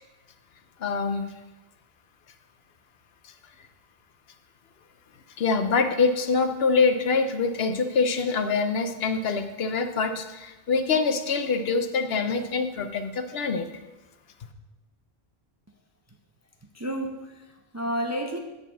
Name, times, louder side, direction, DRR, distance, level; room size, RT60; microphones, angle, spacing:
voice 1, 0.8-1.3 5.4-13.7, left 4 dB, 70° left, 8 dB, 0.9 m, -25 dB
voice 2, 16.7-18.4, equal, 25° right, 2 dB, 0.4 m, -31 dB
9.3 x 4.0 x 7.1 m, 1.1 s
omnidirectional pair, 1.1 m